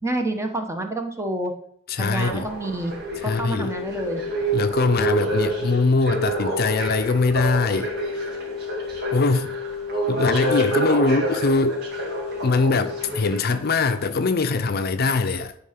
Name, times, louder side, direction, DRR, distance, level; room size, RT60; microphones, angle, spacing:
voice 1, 0.0-1.5 2.0-2.9 3.2-4.2, right 1 dB, 15° right, 1.0 m, -28 dB
voice 2, 1.9-2.5 3.3-3.7 4.5-7.9 9.1-9.5 10.1-11.8 12.4-15.5, left 3 dB, 50° left, 0.5 m, -22 dB
sound 1, 2.2-13.8 14.4-14.5, right 2 dB, 55° right, 2.1 m, -28 dB
sound 2, 3.1-13.1, left 7 dB, 15° left, 1.4 m, -33 dB
11.0 x 3.8 x 5.8 m
head